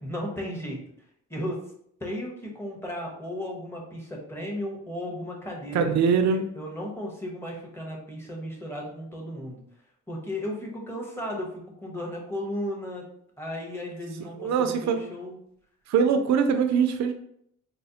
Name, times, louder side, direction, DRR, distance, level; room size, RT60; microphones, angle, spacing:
voice 1, 0.0-0.9 1.3-1.6 2.0-5.9 6.3-9.7 10.1-11.5 11.8-13.0 13.4-15.4, left 1 dB, 10° left, -2 dB, 1.0 m, -35 dB
voice 2, 5.7-6.4 14.4-15.0 15.9-17.1, right 6 dB, 65° right, 7 dB, 0.5 m, -22 dB
4.1 x 2.1 x 2.8 m, 0.70 s
cardioid pair, 90°, 30 cm